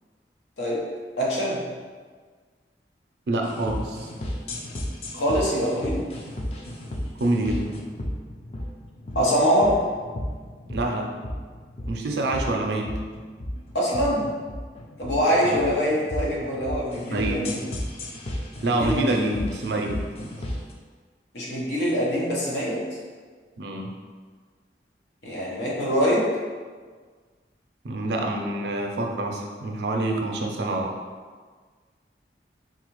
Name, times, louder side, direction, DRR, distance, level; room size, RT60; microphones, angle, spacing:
voice 1, 1.2-1.6 5.1-6.1 9.1-9.8 13.7-14.3 15.0-17.6 18.8-19.2 21.3-22.8 25.2-26.3, equal, 85° left, -4 dB, 0.9 m, -24 dB
voice 2, 3.3-4.1 7.2-7.8 10.6-11.1 11.9-12.9 15.4-15.6 17.1-17.5 18.6-20.3 23.6-23.9 27.8-31.0, right 2 dB, 75° right, 2 dB, 0.5 m, -27 dB
sound 1, 3.4-20.7, left 1 dB, 35° left, 0.4 m, -33 dB
4.0 x 2.3 x 3.0 m, 1.5 s
head